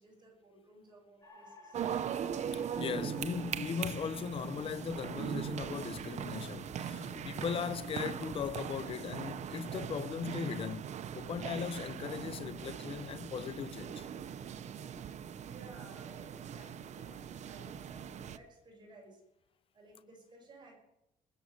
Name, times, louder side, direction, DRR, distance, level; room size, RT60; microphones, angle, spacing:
voice 1, 0.0-1.8 15.4-19.2 19.7-20.8, right 2 dB, 30° right, 6.0 m, -56 dB
sound 1, 1.2-11.5, left 1 dB, 20° left, 4.2 m, -59 dB
sound 2, 1.7-18.4, right 8 dB, 50° right, 0.8 m, -40 dB
voice 2, 2.5-14.1, left 7 dB, 40° left, 0.6 m, -38 dB
sound 3, 6.6-7.8 8.4-9.1 11.0-11.1, left 3 dB, 75° left, 5.8 m, -56 dB
20.0 x 8.5 x 7.9 m
cardioid pair, 115°, 15 cm